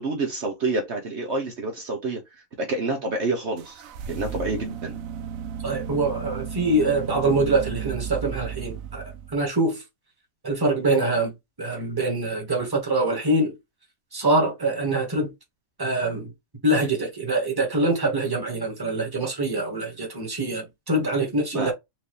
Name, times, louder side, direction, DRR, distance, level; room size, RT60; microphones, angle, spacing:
voice 1, 0.0-5.0 21.5-21.7, right 2 dB, 60° right, 1.2 m, -28 dB
sound 1, 3.6-9.5, right 7 dB, 90° right, 1.0 m, -34 dB
voice 2, 5.6-9.0 9.3-9.8 10.4-11.3 11.6-13.6 14.1-15.3 15.8-16.3 16.6-21.7, right 2 dB, 15° right, 1.5 m, -24 dB
4.5 x 2.7 x 3.1 m
omnidirectional pair, 1.4 m